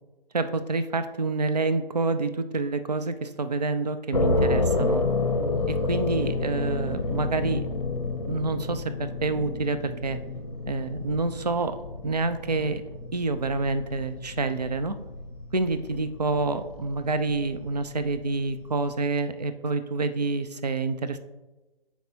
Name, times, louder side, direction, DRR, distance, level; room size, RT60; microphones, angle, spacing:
voice 1, 0.3-5.0 5.7-7.7 8.2-10.2 10.7-11.8 12.0-12.8 13.1-15.0 15.5-21.2, right 3 dB, 45° right, 10 dB, 0.5 m, -28 dB
sound 1, 4.1-18.9, left 2 dB, 40° left, 0.7 m, -30 dB
9.1 x 4.6 x 2.8 m, 1.1 s
figure-of-eight pair, 155°, 29 cm